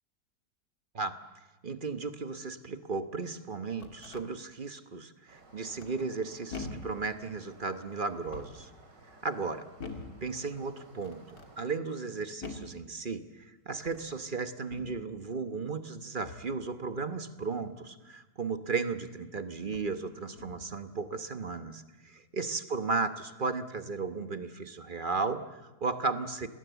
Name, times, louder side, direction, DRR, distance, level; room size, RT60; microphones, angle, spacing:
voice 1, 1.6-8.7 9.2-9.7 10.2-26.5, right 4 dB, 35° right, 10 dB, 1.1 m, -35 dB
sound 1, 3.8-4.3 5.8-6.2 6.5-7.0 8.1-8.7 9.8-10.2 11.0-11.5 12.4-12.8 13.8-14.1 14.7-15.0 16.2-16.6 18.7-18.8 19.6-20.0 20.4-20.8, left 3 dB, 55° left, 2.8 m, -44 dB
sound 2, 5.3-11.7, right 3 dB, 75° right, 3.6 m, -57 dB
28.0 x 20.0 x 8.1 m, 1.1 s
omnidirectional pair, 1.9 m